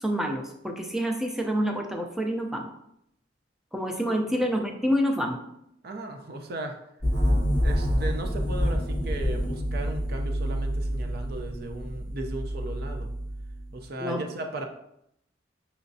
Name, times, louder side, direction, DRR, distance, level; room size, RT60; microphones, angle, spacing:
voice 1, 0.0-2.7 3.7-5.4 14.0-14.2, equal, ahead, 3 dB, 0.4 m, -27 dB
voice 2, 5.8-6.8 7.6-13.1 13.7-14.7, right 2 dB, 55° right, 4 dB, 0.5 m, -36 dB
sound 1, 7.0-13.8, equal, 75° right, 1.7 m, -28 dB
5.7 x 3.1 x 2.6 m, 0.77 s
head